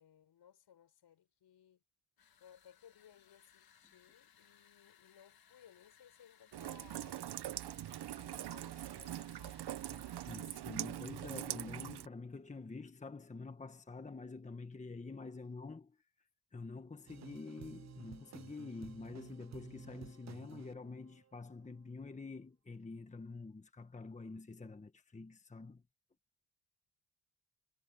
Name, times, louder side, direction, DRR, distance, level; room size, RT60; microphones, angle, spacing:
voice 1, 0.0-1.8 2.4-7.2 8.1-9.7, left 9 dB, 75° left, 6.1 m, -62 dB
sound 1, 2.2-10.5, left 8 dB, 60° left, 1.7 m, -66 dB
Rain, 6.5-12.1, right 13 dB, 75° right, 0.8 m, -43 dB
voice 2, 9.9-16.0 16.5-25.8, left 3 dB, 15° left, 1.3 m, -47 dB
sound 2, 17.1-21.6, right 10 dB, 45° right, 0.5 m, -54 dB
wide cardioid pair, 135°, 41 cm